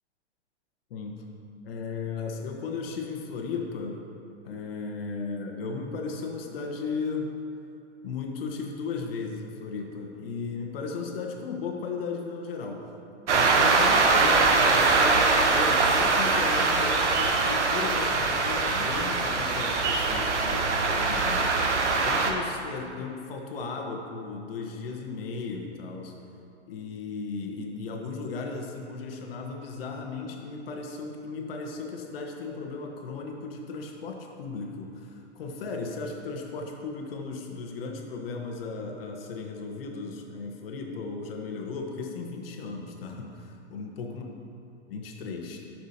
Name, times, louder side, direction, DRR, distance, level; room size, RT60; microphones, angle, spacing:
voice 1, 0.9-1.2 1.6-4.0 4.4-7.3 8.0-12.9 13.3-21.5 22.0-26.1 26.7-44.2 44.9-45.6, left 4 dB, 55° left, 2 dB, 1.2 m, -36 dB
sound 1, 13.3-22.3, right 3 dB, 80° right, 1.1 m, -23 dB
11.5 x 6.0 x 2.8 m, 2.7 s
hypercardioid pair, 130°, 34 cm